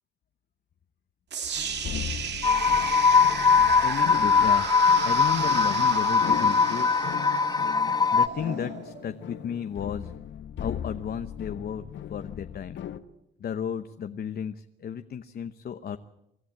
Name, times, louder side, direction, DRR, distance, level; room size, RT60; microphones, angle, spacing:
sound 1, 1.3-9.4, right 7 dB, 60° right, 2.0 m, -35 dB
sound 2, 1.5-13.0, left 9 dB, 65° left, 1.2 m, -38 dB
sound 3, 2.4-8.3, left 5 dB, 20° left, 0.9 m, -21 dB
voice 1, 3.8-4.7 5.0-6.9 8.1-10.1 10.6-11.8 12.1-12.8 13.4-16.0, left 8 dB, 50° left, 9 dB, 0.9 m, -33 dB
24.0 x 13.5 x 8.8 m, 0.84 s
cardioid pair, 90°, 20 cm